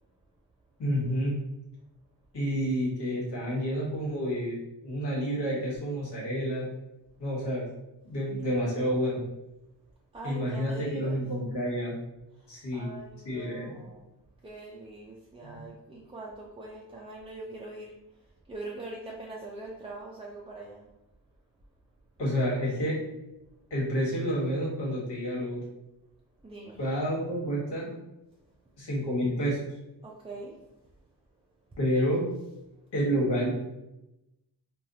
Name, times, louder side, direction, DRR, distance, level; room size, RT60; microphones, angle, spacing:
voice 1, 0.8-1.4 2.3-6.7 7.2-7.6 8.0-9.2 10.2-12.0 12.5-12.9 13.2-13.8 15.4-15.6 22.2-23.0 23.7-25.6 26.8-27.9 28.8-29.6 31.8-32.3 32.9-33.6, equal, 80° left, -5 dB, 1.3 m, -29 dB
voice 2, 10.1-11.2 12.3-20.9 26.4-26.8 30.0-30.7, right 2 dB, 15° right, -4 dB, 0.3 m, -43 dB
3.3 x 2.3 x 2.7 m, 0.93 s
wide cardioid pair, 105°, 41 cm